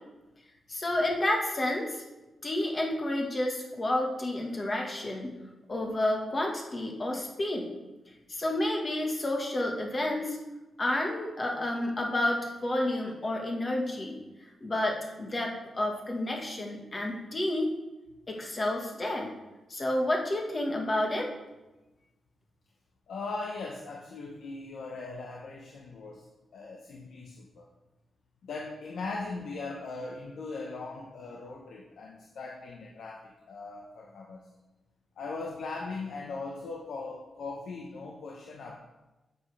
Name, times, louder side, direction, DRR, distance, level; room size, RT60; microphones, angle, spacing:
voice 1, 0.7-2.0 2.4-5.3 5.7-7.7 8.3-10.4 10.8-14.2 14.6-17.7 18.3-19.3 19.7-21.3, left 1 dB, 25° left, 0 dB, 1.6 m, -30 dB
voice 2, 23.1-26.3 26.5-27.7 28.4-34.4 35.2-38.8, left 3 dB, 75° left, 0 dB, 1.1 m, -39 dB
9.8 x 8.2 x 3.4 m, 1.1 s
wide cardioid pair, 145°, 0 cm